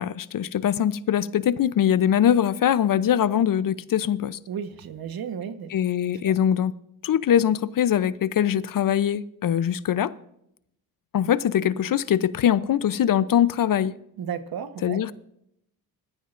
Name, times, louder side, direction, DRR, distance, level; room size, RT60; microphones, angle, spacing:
voice 1, 0.0-4.4 5.7-6.7 7.0-10.1 11.1-13.9 14.8-15.1, left 9 dB, 60° left, 0.7 m, -22 dB
voice 2, 4.5-5.7 6.2-6.3 14.2-15.0, right 8 dB, 70° right, 1.3 m, -33 dB
20.5 x 13.5 x 2.6 m
cardioid pair, 85°, 38 cm